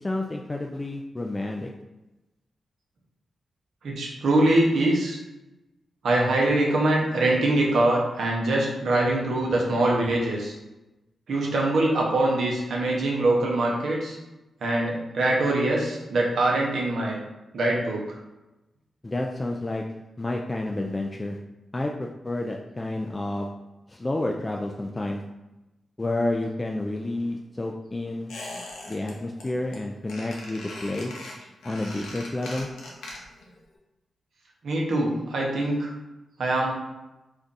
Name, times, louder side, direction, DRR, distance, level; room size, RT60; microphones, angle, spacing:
voice 1, 0.0-1.7 19.0-19.8 20.2-21.4 21.7-23.5 23.9-25.2 26.0-28.3 28.9-31.1 31.6-32.7, left 2 dB, 30° left, 1 dB, 0.3 m, -30 dB
voice 2, 3.8-5.2 6.0-10.6 11.3-14.2 14.6-17.2 17.5-18.1 34.6-35.9 36.4-36.7, right 2 dB, 75° right, -2 dB, 0.8 m, -23 dB
Squeak, 28.3-29.1 29.4-29.8 30.1-33.5 33.7-33.8, left 2 dB, 90° left, 0.6 m, -40 dB
2.5 x 2.3 x 3.9 m, 1.0 s
supercardioid pair, 45°, 0 cm